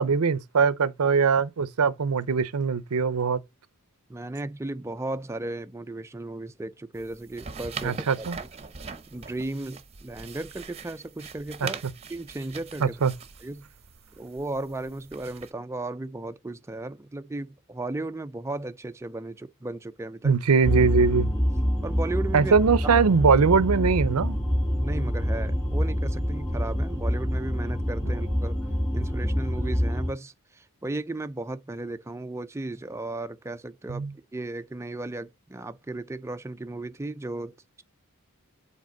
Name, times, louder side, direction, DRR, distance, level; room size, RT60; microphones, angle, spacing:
voice 1, 0.0-3.4 7.8-8.4 11.6-11.7 12.8-13.1 20.2-21.3 22.3-24.4 33.9-34.1, right 5 dB, 90° right, 0.6 m, -22 dB
voice 2, 4.1-8.3 9.1-11.8 12.1-12.9 13.4-13.6 14.2-20.4 21.8-22.5 22.8-23.0 24.8-28.6 28.9-34.1 34.3-37.8, right 2 dB, 10° right, 0.4 m, -35 dB
sound 1, 6.9-15.5, right 5 dB, 30° right, 0.7 m, -42 dB
sound 2, 20.6-30.1, equal, 10° left, 1.9 m, -26 dB
7.5 x 4.1 x 3.9 m
head